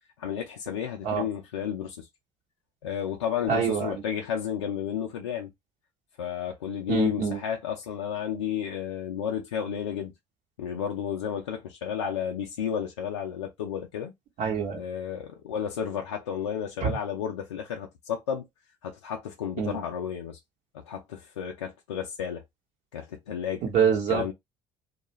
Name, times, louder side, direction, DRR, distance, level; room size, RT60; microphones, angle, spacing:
voice 1, 0.2-2.1 2.8-5.5 6.2-10.1 10.6-14.1 14.8-18.5 18.8-20.4 20.7-22.4 22.9-23.6 24.1-24.3, left 8 dB, 90° left, 0.5 m, -32 dB
voice 2, 3.5-4.0 6.9-7.4 14.4-14.8 16.8-16.9 19.6-19.8 23.6-24.2, right 6 dB, 60° right, 1.0 m, -25 dB
2.3 x 2.2 x 3.0 m
hypercardioid pair, 60°, 14 cm